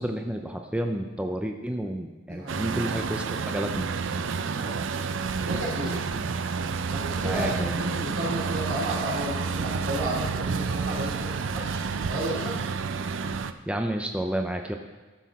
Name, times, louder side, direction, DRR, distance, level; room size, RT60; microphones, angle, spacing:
voice 1, 0.0-3.9 7.2-7.7 13.7-14.8, right 1 dB, 5° right, 3 dB, 0.5 m, -30 dB
voice 2, 2.3-2.6 4.4-4.9 5.3-6.0 6.9-11.8 12.1-12.6, right 1 dB, 80° right, -4 dB, 3.1 m, -33 dB
Truck, 2.5-13.5, right 5 dB, 65° right, 0.4 m, -30 dB
13.5 x 6.1 x 4.1 m, 1.3 s
head